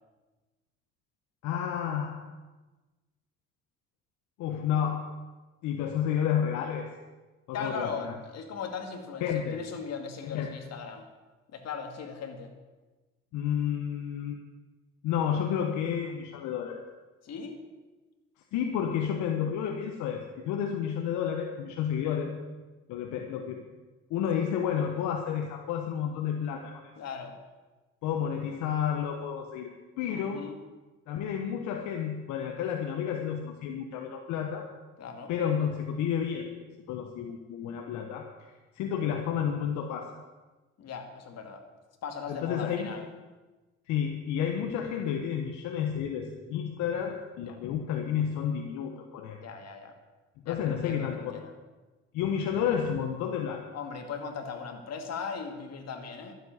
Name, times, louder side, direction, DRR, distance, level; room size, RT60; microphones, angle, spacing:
voice 1, 1.4-2.1 4.4-5.0 5.6-6.9 7.5-8.1 9.2-9.6 10.3-10.5 13.3-14.4 15.0-16.8 18.5-22.3 22.9-23.6 24.1-26.8 28.0-29.7 30.0-30.4 31.1-34.7 35.3-36.5 36.9-38.3 38.7-40.1 42.3-43.0 43.9-49.4 50.4-51.4 52.1-53.7, left 8 dB, 80° left, 4 dB, 1.3 m, -31 dB
voice 2, 7.5-11.1 11.5-12.5 17.2-17.6 27.0-27.3 30.1-30.5 35.0-35.3 40.8-41.6 42.0-43.1 47.5-47.6 49.4-50.0 50.5-51.5 53.7-56.3, left 5 dB, 60° left, 5 dB, 2.5 m, -38 dB
12.5 x 8.0 x 9.6 m, 1.2 s
supercardioid pair, 85°, 29 cm